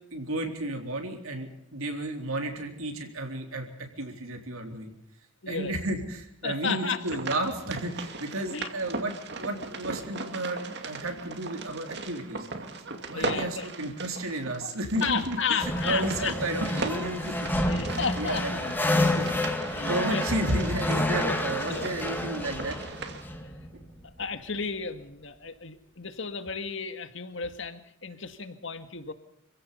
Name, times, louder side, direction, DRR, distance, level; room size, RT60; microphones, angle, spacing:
voice 1, 0.1-3.7 4.0-4.9 5.5-12.5 13.1-17.5 18.2-18.7 19.2-19.4 19.8-22.8, right 1 dB, 85° right, 3 dB, 3.8 m, -32 dB
voice 2, 5.4-5.7 6.4-7.0 8.5-8.7 13.1-13.7 14.6-14.7 15.0-16.3 17.7-18.8 19.6-20.6 21.2-21.4 21.7-22.0 23.4-23.5 24.2-29.1, left 5 dB, 60° left, 9 dB, 2.0 m, -33 dB
sound 1, 7.0-23.2, right 3 dB, 50° right, 2.5 m, -38 dB
sound 2, 15.6-24.2, left 1 dB, 10° left, 2.3 m, -29 dB
26.5 x 16.5 x 7.0 m, 0.76 s
head